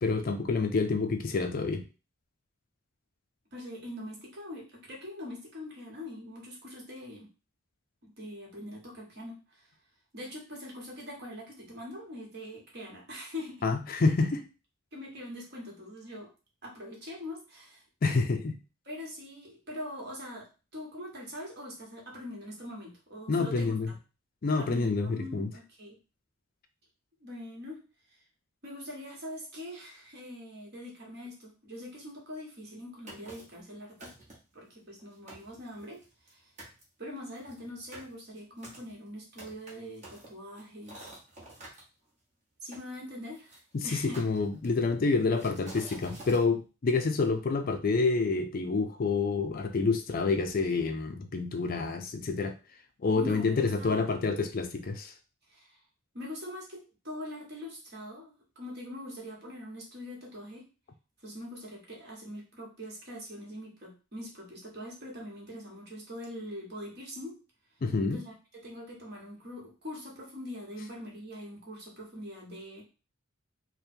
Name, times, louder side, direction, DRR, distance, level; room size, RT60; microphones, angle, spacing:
voice 1, 0.0-1.8 13.6-14.4 18.0-18.6 23.3-23.9 24.4-25.5 43.7-52.5 53.0-55.1 67.8-68.2, left 4 dB, 45° left, 7 dB, 0.4 m, -28 dB
voice 2, 3.5-7.3 8.0-9.6 10.1-13.6 14.9-16.3 16.6-17.8 18.8-20.5 20.7-23.7 24.6-26.0 27.2-27.8 28.6-34.1 34.5-36.5 37.0-41.1 42.6-44.2 53.1-54.1 55.5-55.8 56.1-60.7 61.2-67.3 68.1-68.3 68.6-72.8, left 1 dB, 50° right, -2 dB, 1.4 m, -43 dB
sound 1, 33.1-33.6 34.0-34.5 35.0-35.1 35.3-36.3 36.6-36.8 37.3-41.8 42.7-43.6 44.1-44.9 45.3-46.4, right 2 dB, 35° right, 1.2 m, -49 dB
3.4 x 2.2 x 4.3 m, 0.32 s
head